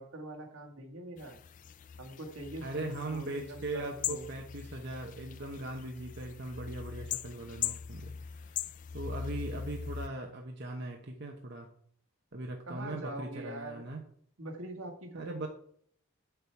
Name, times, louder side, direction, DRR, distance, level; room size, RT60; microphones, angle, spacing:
voice 1, 0.0-1.4 2.0-4.3 12.7-13.8 14.4-15.5, right 1 dB, 75° right, 1 dB, 1.9 m, -43 dB
sound 1, 1.2-10.1, left 8 dB, 35° left, 0.3 m, -41 dB
voice 2, 2.6-8.5 8.9-11.7 12.3-14.0 15.2-15.5, right 2 dB, 50° right, 1 dB, 1.0 m, -40 dB
8.8 x 6.9 x 4.7 m, 0.63 s
head